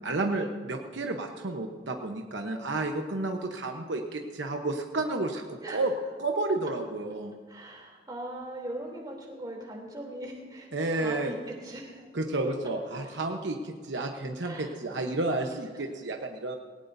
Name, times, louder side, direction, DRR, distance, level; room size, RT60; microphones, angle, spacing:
voice 1, 0.0-5.9 6.2-7.3 10.7-11.3 12.1-16.6, right 2 dB, 70° right, 3 dB, 1.0 m, -31 dB
voice 2, 7.5-12.1 13.0-13.1 14.4-14.8 15.4-15.9, right 1 dB, 20° right, -1 dB, 3.1 m, -41 dB
19.5 x 18.0 x 2.7 m, 1.5 s
head